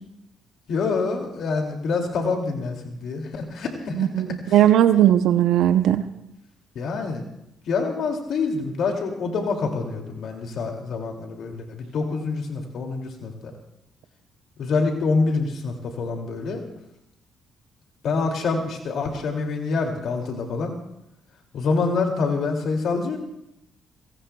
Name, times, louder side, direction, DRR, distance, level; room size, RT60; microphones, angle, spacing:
voice 1, 0.7-4.1 4.5-4.6 6.7-7.2 7.7-13.3 14.6-16.6 18.0-20.7 21.5-23.2, left 4 dB, 70° left, 2 dB, 2.4 m, -26 dB
voice 2, 4.0-6.0, right 11 dB, 85° right, 10 dB, 0.6 m, -18 dB
29.5 x 18.0 x 2.3 m, 0.85 s
cardioid pair, 90°, 0 cm